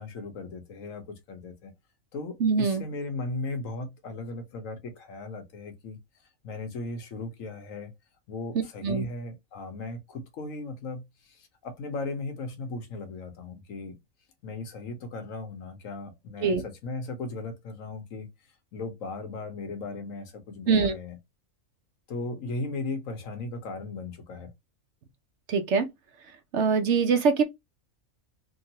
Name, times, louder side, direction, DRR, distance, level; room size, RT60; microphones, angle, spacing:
voice 1, 0.0-1.7 2.1-6.0 6.4-7.9 8.3-13.9 14.4-18.3 18.7-21.2 22.1-24.5, left 3 dB, 70° left, 1.2 m, -37 dB
voice 2, 2.4-2.8 8.8-9.0 16.4-16.6 20.7-21.0 25.5-25.9 26.5-27.4, right 5 dB, 65° right, 0.9 m, -23 dB
3.7 x 2.3 x 2.7 m
omnidirectional pair, 1.5 m